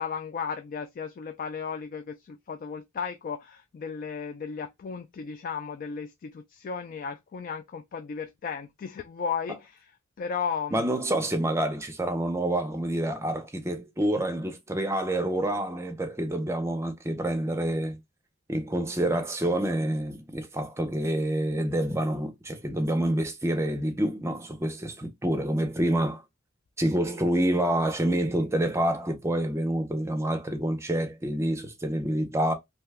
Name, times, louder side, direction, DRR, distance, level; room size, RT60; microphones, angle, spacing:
voice 1, 0.0-9.9 10.2-10.8, left 6 dB, 45° left, 0.3 m, -35 dB
voice 2, 10.7-18.0 18.5-26.2 26.8-32.5, right 1 dB, 15° right, 0.6 m, -27 dB
2.8 x 2.2 x 3.3 m
head